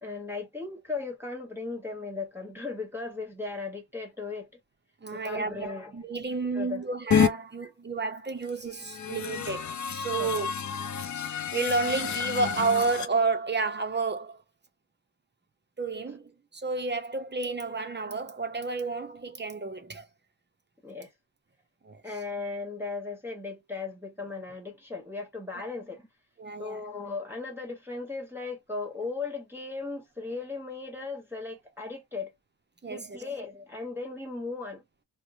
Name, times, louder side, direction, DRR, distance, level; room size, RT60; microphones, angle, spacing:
voice 1, 0.0-4.5 5.1-6.1 6.5-6.8 10.1-10.3 20.8-21.1 22.0-26.1 26.6-32.3 32.9-34.8, left 4 dB, 5° right, 1.0 m, -37 dB
voice 2, 5.0-10.5 11.5-14.4 15.8-16.2 16.5-20.1 21.8-22.0 25.5-25.6 26.4-26.8 32.8-33.2, right 4 dB, 25° right, 0.5 m, -31 dB
sound 1, 7.1-7.3 8.7-13.1, left 7 dB, 40° left, 0.5 m, -29 dB
3.0 x 2.1 x 2.5 m
wide cardioid pair, 105°, 47 cm